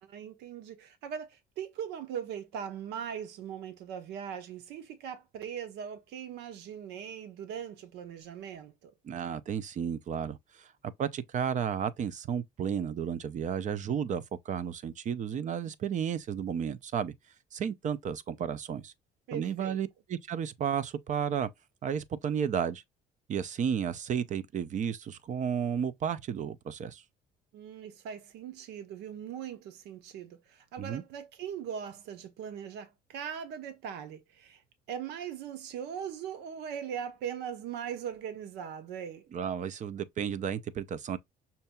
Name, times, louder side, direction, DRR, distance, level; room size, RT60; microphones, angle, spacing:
voice 1, 0.0-8.9 19.3-19.8 27.5-34.6 34.9-39.3, right 8 dB, 85° right, 0.9 m, -40 dB
voice 2, 9.0-10.4 11.0-17.1 17.5-18.9 19.3-21.5 21.8-22.8 23.3-27.0 30.8-31.0 39.3-41.2, right 8 dB, 45° right, 0.6 m, -32 dB
5.7 x 2.7 x 2.2 m
cardioid pair, 110°, 17 cm